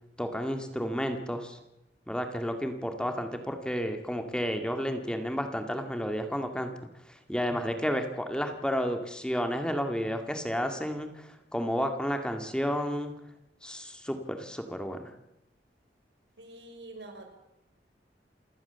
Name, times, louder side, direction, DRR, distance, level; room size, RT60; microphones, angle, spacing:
voice 1, 0.2-1.6 2.1-6.7 7.1-13.1 13.6-15.1, equal, 5° left, 6 dB, 2.1 m, -31 dB
voice 2, 16.4-17.3, right 2 dB, 85° right, 5 dB, 5.7 m, -46 dB
28.0 x 17.0 x 7.0 m, 0.87 s
head